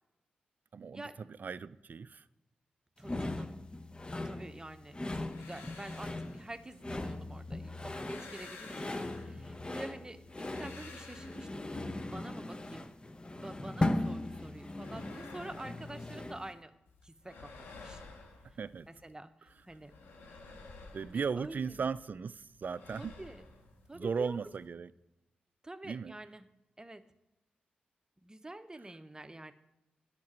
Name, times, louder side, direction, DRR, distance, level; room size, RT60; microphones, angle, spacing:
voice 1, 0.7-1.1 1.4-2.3 18.6-18.9 20.9-23.2 23.9-24.9 25.8-26.1, right 5 dB, 55° right, 18 dB, 0.4 m, -36 dB
sound 1, 3.0-16.5, left 2 dB, 25° left, 0.9 m, -38 dB
voice 2, 3.0-3.5 4.2-11.7 12.1-12.9 13.4-16.7 17.0-18.0 19.0-19.9 20.3-20.4 21.0-21.8 22.9-23.5 23.9-24.4 25.6-26.5 26.8-27.1 28.2-29.5, right 2 dB, 20° right, 11 dB, 0.9 m, -47 dB
sound 2, 5.2-7.3 7.7-9.7 10.1-12.0 14.4-16.6 16.9-19.1 19.5-22.0 22.3-24.7, left 3 dB, 85° left, 1.5 m, -53 dB
10.5 x 5.9 x 6.1 m, 0.96 s
supercardioid pair, 45°, 4 cm